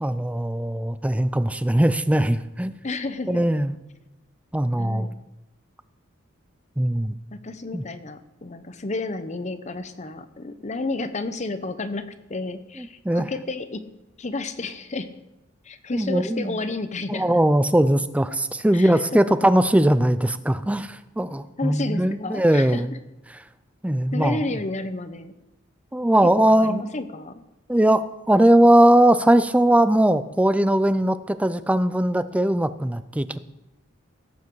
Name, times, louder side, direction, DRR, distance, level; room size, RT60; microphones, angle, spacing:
voice 1, 0.0-2.7 3.3-3.8 4.5-5.1 6.8-7.2 7.7-7.8 12.8-13.3 15.9-16.6 17.1-22.9 23.8-24.6 25.9-26.9 27.7-33.4, right 1 dB, 5° right, 13 dB, 0.4 m, -20 dB
voice 2, 2.8-3.4 4.8-5.2 7.3-13.8 14.2-15.1 15.6-17.3 18.7-19.4 21.6-22.8 24.1-25.3 26.5-27.4, left 2 dB, 35° left, 11 dB, 0.8 m, -31 dB
16.5 x 8.3 x 4.7 m, 0.97 s
head